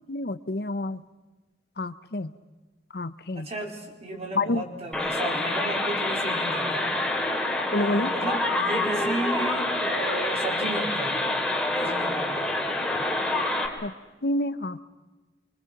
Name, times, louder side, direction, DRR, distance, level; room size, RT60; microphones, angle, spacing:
voice 1, 0.1-1.0 1.8-2.3 2.9-3.5 4.4-4.6 7.7-8.1 13.8-13.9 14.2-14.8, left 2 dB, 60° left, 13 dB, 0.8 m, -28 dB
voice 2, 3.3-7.0 7.7-11.2 11.7-12.5, right 2 dB, 35° right, 1 dB, 4.1 m, -34 dB
sound 1, 4.9-13.7, left 2 dB, 5° left, 3.1 m, -27 dB
26.0 x 24.5 x 6.0 m, 1.2 s
head